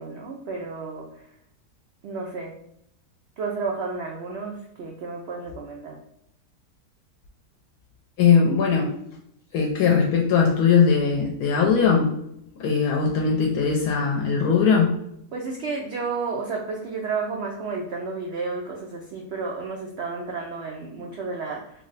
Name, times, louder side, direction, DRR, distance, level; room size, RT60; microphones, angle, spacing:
voice 1, 0.0-1.4 2.0-2.6 3.4-6.0 15.3-21.8, right 4 dB, 80° right, -1 dB, 0.6 m, -32 dB
voice 2, 8.2-8.9 9.5-12.2 12.6-14.9, left 6 dB, 75° left, -1 dB, 1.1 m, -20 dB
3.2 x 2.0 x 3.9 m, 0.75 s
omnidirectional pair, 1.7 m